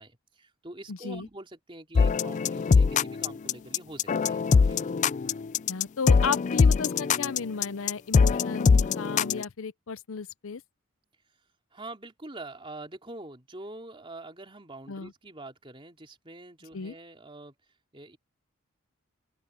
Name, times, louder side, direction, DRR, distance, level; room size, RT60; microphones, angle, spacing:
voice 1, 0.0-4.8 11.7-17.5 17.9-18.2, right 2 dB, 25° right, 3.4 m, -45 dB
voice 2, 0.9-1.3 5.7-10.6 14.9-15.1 16.7-16.9, left 5 dB, 80° left, 0.6 m, -34 dB
sound 1, 2.0-9.4, left 5 dB, 35° left, 0.3 m, -22 dB
open air
head